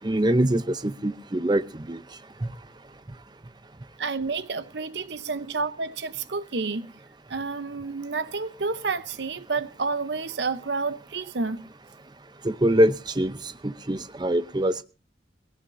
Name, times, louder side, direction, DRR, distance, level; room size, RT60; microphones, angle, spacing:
voice 1, 0.0-2.0 12.4-13.4 13.6-14.8, right 1 dB, 25° right, 0.6 m, -23 dB
voice 2, 4.0-6.9 7.3-11.7, right 4 dB, 70° right, 0.8 m, -30 dB
19.5 x 17.0 x 2.6 m
head